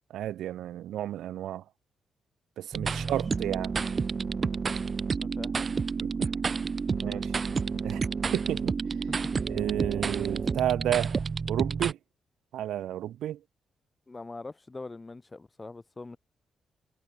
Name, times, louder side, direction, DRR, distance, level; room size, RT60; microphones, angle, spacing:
voice 1, 0.1-1.6 2.6-3.7 6.0-6.3 6.9-7.3 7.7-8.0 8.3-8.7 9.5-12.0 12.5-13.4, right 12 dB, 80° right, 1.0 m, -32 dB
sound 1, 2.7-11.9, right 5 dB, 45° right, 0.7 m, -30 dB
voice 2, 5.2-5.5 6.2-6.4 7.0-7.3 14.1-16.2, left 3 dB, 30° left, 7.5 m, -43 dB
supercardioid pair, 55°, 0 cm